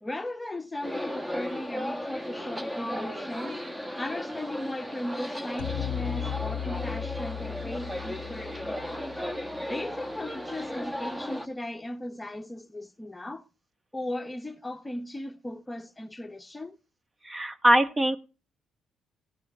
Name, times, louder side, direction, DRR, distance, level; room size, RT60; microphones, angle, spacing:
voice 1, 0.0-3.6 4.0-9.0 9.7-13.4 13.9-16.8, left 1 dB, 15° left, 1.0 m, -37 dB
sound 1, 0.8-11.5, equal, 10° right, 1.4 m, -35 dB
sound 2, 5.6-9.9, left 11 dB, 80° left, 0.6 m, -36 dB
voice 2, 17.2-18.2, equal, 25° right, 1.5 m, -22 dB
15.5 x 5.7 x 7.0 m
supercardioid pair, 60°, 0 cm